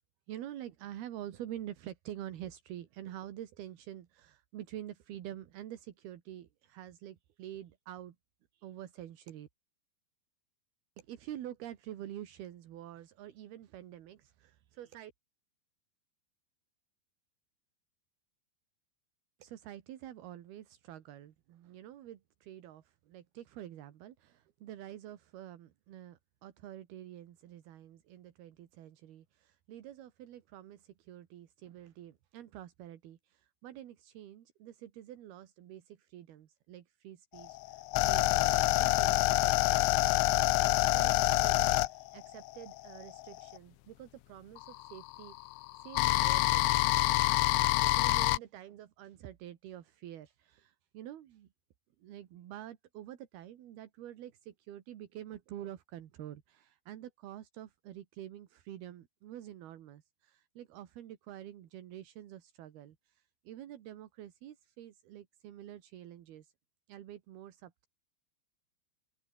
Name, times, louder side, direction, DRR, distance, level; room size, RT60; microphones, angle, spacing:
voice 1, 0.3-8.2 8.5-9.5 11.0-15.1 19.4-40.1 40.6-45.5 45.8-46.8 47.7-51.5 52.0-66.5 66.9-67.9, right 12 dB, 60° right, 3.3 m, -47 dB
sound 1, 37.4-43.6 44.6-48.4, left 19 dB, 80° left, 3.3 m, -27 dB
open air
omnidirectional pair, 5.6 m